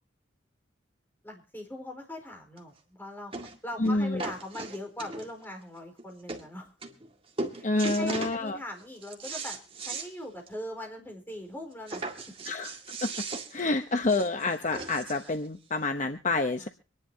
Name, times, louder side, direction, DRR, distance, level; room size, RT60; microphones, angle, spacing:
voice 1, 1.2-3.3 3.6-6.7 7.5-9.6 9.9-12.4 16.6-16.7, left 1 dB, 10° left, 2 dB, 4.4 m, -41 dB
sound 1, 2.6-2.7 3.3-3.6 3.8-5.5 6.0-6.1 6.3-6.5 6.8-7.1 7.4-8.4 8.8-10.1 10.5-10.6 10.9-11.0 11.9-15.3 16.2-16.3, right 3 dB, 30° right, 2.0 m, -37 dB
voice 2, 3.8-4.2 7.6-8.6 12.5-13.1 13.5-16.7, left 2 dB, 40° left, 7 dB, 0.9 m, -28 dB
25.5 x 10.5 x 2.8 m, 0.37 s
head